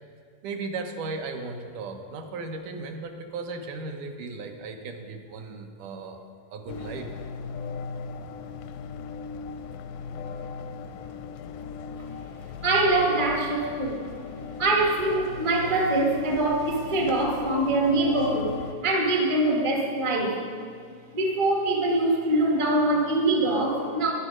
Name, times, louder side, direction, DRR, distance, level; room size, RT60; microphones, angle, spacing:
voice 1, 0.4-6.2 6.5-7.1, right 3 dB, 75° right, 4 dB, 2.2 m, -36 dB
sound 1, 6.7-18.7, left 5 dB, 90° left, 2.4 m, -38 dB
voice 2, 12.6-14.0 14.6-18.5 18.8-20.4 21.1-24.1, right 2 dB, 45° right, -1 dB, 0.4 m, -23 dB
13.0 x 11.0 x 5.0 m, 2.1 s
omnidirectional pair, 3.9 m